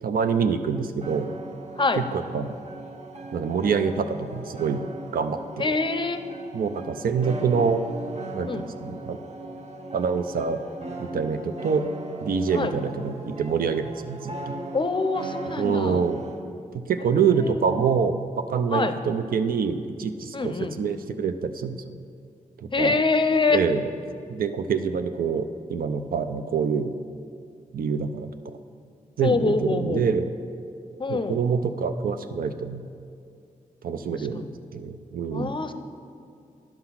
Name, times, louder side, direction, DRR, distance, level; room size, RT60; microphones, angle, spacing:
voice 1, 0.0-1.3 2.0-2.1 2.3-2.5 3.3-4.8 5.1-5.8 6.5-7.8 8.3-9.2 9.9-10.6 11.0-11.9 12.2-14.6 15.6-16.2 16.7-21.9 22.6-23.0 23.5-23.8 24.3-26.9 27.7-28.5 29.2-30.3 31.1-32.9 33.8-34.5 34.7-35.6, right 6 dB, 85° right, 9 dB, 0.5 m, -26 dB
sound 1, 1.0-16.4, right 2 dB, 50° right, 0.9 m, -38 dB
voice 2, 5.6-6.2 8.5-8.6 12.5-12.7 14.7-16.0 17.0-17.6 18.7-18.9 20.3-20.7 22.7-23.6 29.2-30.0 31.0-31.4 34.1-34.5 35.3-35.7, left 3 dB, 35° left, 9 dB, 0.5 m, -25 dB
10.5 x 5.8 x 5.7 m, 2.4 s
wide cardioid pair, 90°, 15 cm